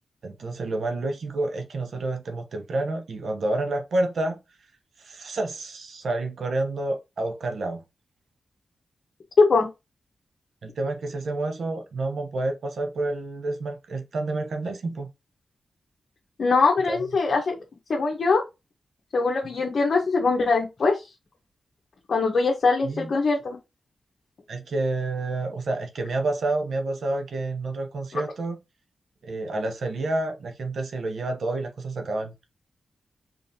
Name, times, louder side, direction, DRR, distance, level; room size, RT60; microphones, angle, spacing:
voice 1, 0.2-4.4 5.0-7.8 10.6-15.1 16.9-17.0 22.8-23.1 24.5-28.6 29.2-32.3, right 2 dB, 75° right, 0.8 m, -29 dB
voice 2, 9.4-9.7 16.4-17.5 17.9-18.4 19.1-21.0 22.1-23.6, left 4 dB, 65° left, 1.0 m, -22 dB
3.8 x 3.4 x 2.7 m
cardioid pair, 60°, 0 cm